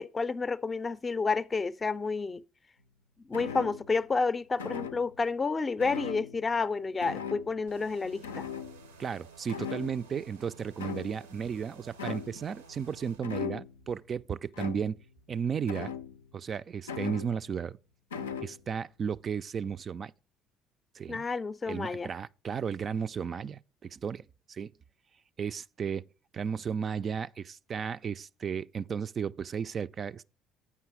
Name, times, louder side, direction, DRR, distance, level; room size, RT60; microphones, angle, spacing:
voice 1, 0.0-2.4 3.3-8.4 21.1-22.1, left 4 dB, 25° left, 0.5 m, -30 dB
sound 1, 3.3-4.0 4.6-5.2 5.8-6.7 7.0-7.7 8.2-9.1 9.5-10.3 10.8-11.4 12.0-12.5 13.2-13.9 14.5-15.1 15.7-16.4 16.9-17.6 18.1-18.6, left 7 dB, 85° left, 0.4 m, -39 dB
sound 2, 7.7-13.2, right 4 dB, 85° right, 0.6 m, -53 dB
voice 2, 9.0-15.0 15.3-15.9 16.3-17.8 18.4-20.1 20.9-21.3 21.6-24.7 25.4-26.1 26.3-30.2, right 7 dB, 40° right, 0.3 m, -34 dB
8.4 x 5.5 x 4.7 m
figure-of-eight pair, 55°, 0 cm